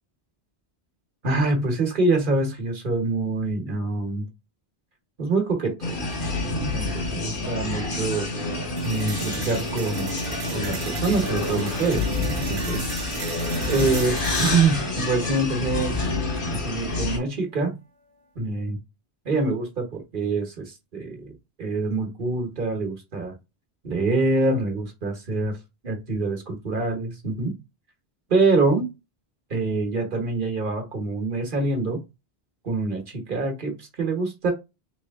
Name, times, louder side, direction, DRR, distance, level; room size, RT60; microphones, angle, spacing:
voice 1, 1.2-4.3 5.2-6.0 6.5-8.3 8.8-10.1 10.5-12.8 13.7-15.9 16.5-17.8 18.4-18.8 19.2-23.3 23.8-25.5 25.8-27.6 28.3-28.9 29.5-32.0 32.6-34.5, right 3 dB, 55° right, 3 dB, 1.2 m, -25 dB
sound 1, 5.8-17.2, left 2 dB, 55° left, 1.2 m, -28 dB
sound 2, 8.8-16.8, right 6 dB, 85° right, 1.0 m, -37 dB
3.1 x 3.1 x 3.4 m, 0.24 s
omnidirectional pair, 1.1 m